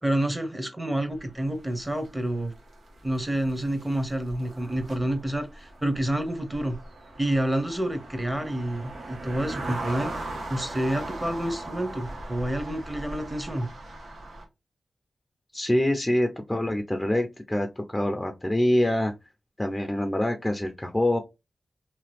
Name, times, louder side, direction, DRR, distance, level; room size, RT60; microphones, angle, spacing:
voice 1, 0.0-2.5 3.0-6.8 7.2-10.1 10.5-13.7, right 1 dB, 10° right, 1.0 m, -28 dB
sound 1, 1.1-14.5, right 2 dB, 80° right, 1.2 m, -39 dB
voice 2, 15.5-19.1 19.6-21.2, left 1 dB, 15° left, 0.6 m, -25 dB
2.9 x 2.3 x 3.3 m
cardioid pair, 50°, 0 cm